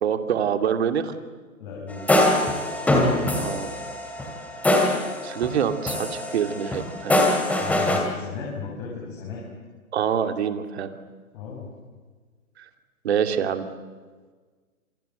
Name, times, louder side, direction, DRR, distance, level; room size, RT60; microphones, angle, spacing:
voice 1, 0.0-1.1 3.3-3.8 5.2-7.2 9.9-10.9 12.6-12.7 13.0-13.6, right 8 dB, 50° right, 8 dB, 2.7 m, -25 dB
voice 2, 1.6-2.1 7.6-9.4 11.3-11.7, left 5 dB, 35° left, -2 dB, 7.2 m, -35 dB
sound 1, 1.9-5.6 5.9-8.0, left 1 dB, 5° left, 2.7 m, -23 dB
28.0 x 26.0 x 7.9 m, 1.4 s
hypercardioid pair, 145°, 43 cm